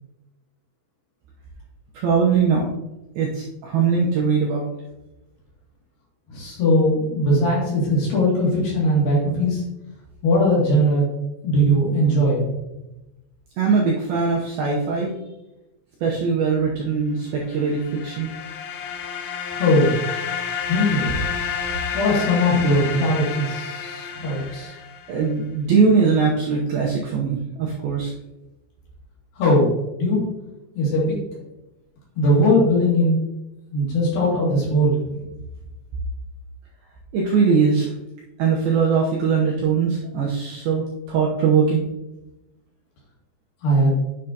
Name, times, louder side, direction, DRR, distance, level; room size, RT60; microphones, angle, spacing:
voice 1, 1.9-2.7 3.2-4.7 13.6-15.1 16.0-18.3 24.3-24.7 25.1-28.1 37.1-37.9 38.4-41.9, right 5 dB, 75° right, -2 dB, 2.2 m, -21 dB
voice 2, 6.3-9.6 10.2-11.1 11.4-12.5 19.5-20.0 20.7-21.2 21.9-24.7 29.4-30.2 30.8-31.2 32.2-33.2 33.7-35.2 43.6-43.9, equal, 55° left, -5 dB, 3.9 m, -20 dB
sound 1, 17.5-25.2, left 7 dB, 80° left, 2.3 m, -30 dB
9.9 x 6.5 x 2.8 m, 0.96 s
omnidirectional pair, 5.3 m